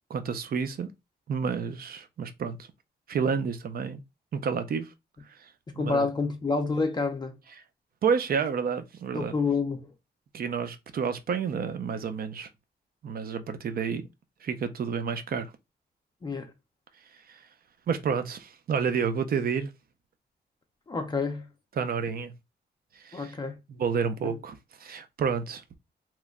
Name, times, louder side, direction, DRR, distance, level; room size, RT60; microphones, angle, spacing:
voice 1, 0.1-0.9 1.3-2.6 3.1-4.0 4.3-4.9 5.7-6.1 8.0-9.3 10.3-12.5 13.0-14.1 14.4-15.5 17.3-17.4 17.9-19.7 21.8-22.3 23.0-23.3 23.7-25.6, right 6 dB, 55° right, 0.5 m, -29 dB
voice 2, 5.7-7.4 9.1-9.9 16.2-16.5 20.9-21.5 23.1-23.6 24.2-24.3, left 4 dB, 25° left, 0.4 m, -28 dB
3.0 x 2.1 x 3.5 m
wide cardioid pair, 145°, 18 cm